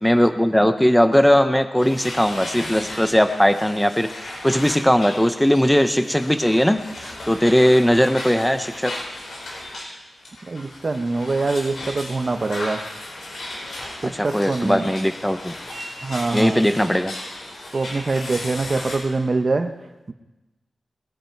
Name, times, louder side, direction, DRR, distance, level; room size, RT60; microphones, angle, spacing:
voice 1, 0.0-4.1 4.4-8.9 14.0-15.5 16.3-17.1, equal, 5° left, 9 dB, 0.6 m, -19 dB
sound 1, 1.8-9.9 10.2-19.0, left 1 dB, 70° left, 5.2 m, -35 dB
voice 2, 10.5-12.8 14.1-14.9 16.0-16.6 17.7-19.7, right 3 dB, 35° right, 7 dB, 1.0 m, -24 dB
21.0 x 10.0 x 4.6 m, 1.1 s
wide cardioid pair, 160°, 0 cm